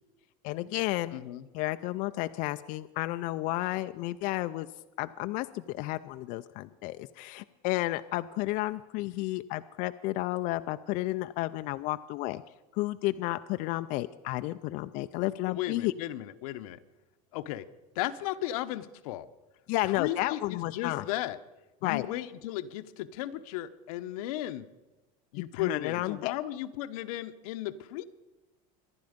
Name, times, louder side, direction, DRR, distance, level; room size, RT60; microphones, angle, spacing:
voice 1, 0.4-1.2 1.5-4.7 5.0-12.4 12.7-15.9 19.7-21.0 21.8-22.1 25.6-26.3, left 18 dB, 45° left, 9 dB, 0.4 m, -32 dB
voice 2, 1.1-1.5 15.5-16.8 17.3-17.7 17.9-19.3 19.9-21.4 21.8-24.7 25.3-28.0, left 13 dB, 80° left, 11 dB, 0.9 m, -35 dB
25.0 x 10.5 x 5.1 m, 1.1 s
supercardioid pair, 155°, 18 cm